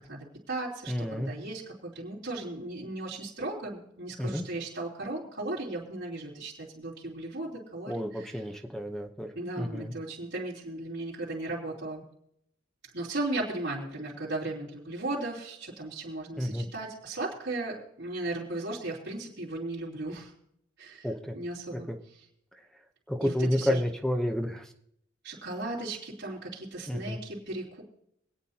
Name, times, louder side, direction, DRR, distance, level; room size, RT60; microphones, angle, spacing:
voice 1, 0.0-8.4 9.3-12.0 12.9-20.3 20.8-21.1 21.3-21.9 23.2-23.8 25.2-27.8, right 2 dB, 60° right, -8 dB, 3.5 m, -36 dB
voice 2, 0.9-1.3 4.2-4.4 7.9-9.9 16.4-16.6 21.0-21.4 21.7-22.0 22.6-22.7 23.1-24.7 26.9-27.2, left 1 dB, 5° left, 4 dB, 0.9 m, -31 dB
25.5 x 9.1 x 2.9 m, 0.73 s
head